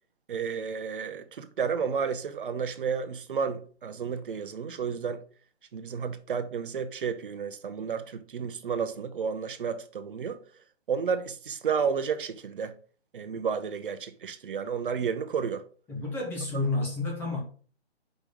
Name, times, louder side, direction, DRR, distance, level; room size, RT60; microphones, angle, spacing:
voice 1, 0.3-5.2 5.7-10.4 10.9-12.8 13.1-15.6, right 6 dB, 50° right, 0.8 m, -31 dB
voice 2, 15.9-17.4, left 2 dB, 5° left, 0.9 m, -30 dB
6.0 x 5.3 x 5.4 m
hypercardioid pair, 160°, 34 cm